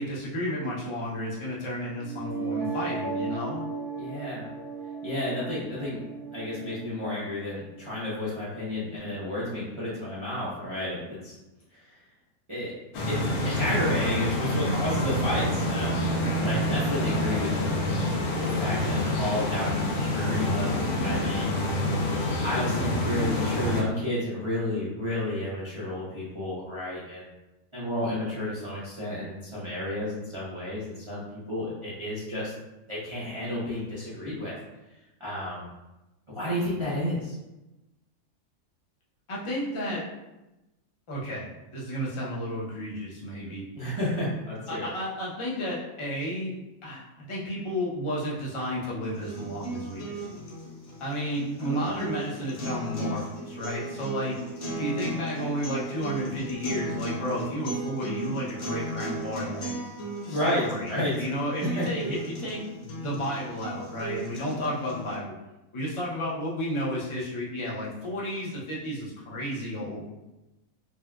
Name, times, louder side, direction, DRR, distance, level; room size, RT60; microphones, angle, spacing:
voice 1, 0.0-3.7 39.3-40.0 41.1-43.6 44.7-46.5 46.8-50.2 51.0-54.4 54.8-59.7 60.3-60.9 61.2-65.3 65.7-70.1, equal, 40° left, -5 dB, 0.4 m, -32 dB
sound 1, 2.0-8.0, right 4 dB, 60° right, 2.0 m, -36 dB
voice 2, 4.0-4.5 5.0-6.0 6.3-11.3 11.7-11.8 12.5-12.7 13.1-13.2 13.4-16.0 16.3-18.0 18.4-21.9 22.4-27.3 27.7-32.5 32.9-34.5 35.2-35.7 36.3-37.4 43.8-44.9 51.6-52.0 60.2-61.1 61.6-62.1, left 1 dB, 30° right, -9 dB, 0.6 m, -31 dB
sound 2, 12.9-23.8, left 1 dB, 90° left, 1.1 m, -27 dB
sound 3, 49.1-65.1, right 2 dB, 70° left, 1.2 m, -36 dB
4.1 x 2.2 x 2.3 m, 0.98 s
omnidirectional pair, 1.6 m